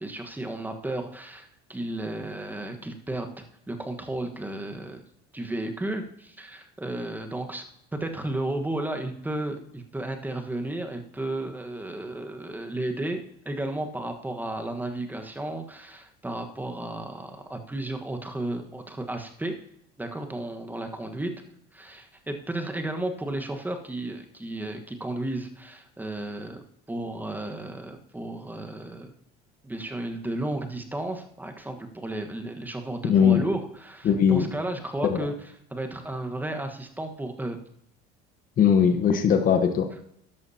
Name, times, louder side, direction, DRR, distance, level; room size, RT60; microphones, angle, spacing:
voice 1, 0.0-5.0 5.3-7.7 7.9-19.6 20.0-21.3 21.7-26.6 26.9-29.1 29.6-37.6, right 1 dB, 10° right, 5 dB, 1.3 m, -33 dB
voice 2, 33.0-33.4 34.0-34.5 35.0-35.3 38.6-39.9, left 7 dB, 45° left, 6 dB, 1.1 m, -20 dB
13.5 x 11.0 x 2.8 m, 0.71 s
supercardioid pair, 110°, 20 cm